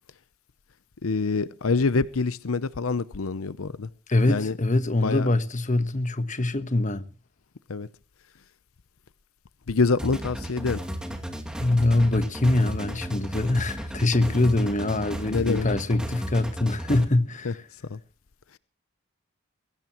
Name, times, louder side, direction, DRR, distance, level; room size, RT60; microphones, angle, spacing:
voice 1, 1.0-3.9 4.3-4.5 5.0-5.3 7.7-7.9 9.7-10.8 15.3-15.7 17.4-17.5 17.9-18.0, left 4 dB, 80° left, 0.7 m, -25 dB
voice 2, 4.1-7.0 11.6-17.6, left 2 dB, 35° left, 1.3 m, -23 dB
sound 1, 10.0-17.0, equal, 5° right, 2.4 m, -34 dB
22.5 x 16.5 x 3.0 m
head